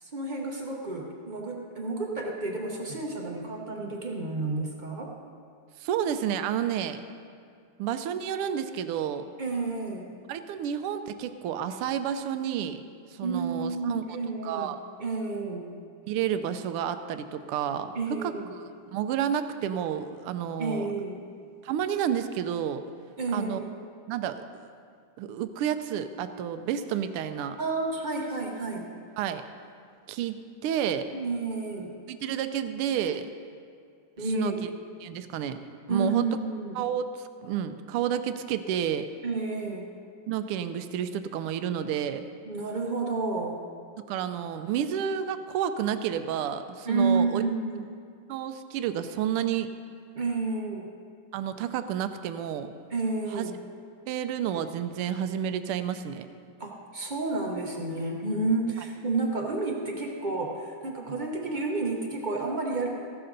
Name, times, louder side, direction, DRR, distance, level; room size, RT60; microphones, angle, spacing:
voice 1, 0.0-5.1 9.4-10.1 13.2-14.7 15.0-15.7 17.9-18.5 20.6-21.3 23.2-23.7 27.6-28.9 31.1-32.0 34.2-34.6 35.9-36.9 39.2-39.9 42.5-43.6 46.8-47.8 50.1-50.9 52.9-53.6 56.6-62.9, right 3 dB, 50° right, 0 dB, 0.5 m, -30 dB
voice 2, 5.8-7.0 7.8-9.3 10.3-12.8 13.1-14.0 14.4-14.8 16.1-18.6 18.9-20.9 21.6-22.8 23.3-23.6 24.1-24.7 25.2-27.6 29.2-29.4 30.1-31.1 32.1-33.3 34.2-34.7 35.0-35.6 35.9-36.3 36.7-37.1 37.4-39.1 40.3-42.3 44.1-47.4 48.3-49.7 51.3-52.7 53.3-53.5 54.1-56.3, right 9 dB, 85° right, 10 dB, 1.5 m, -30 dB
15.0 x 12.0 x 3.9 m, 2.2 s
omnidirectional pair, 2.4 m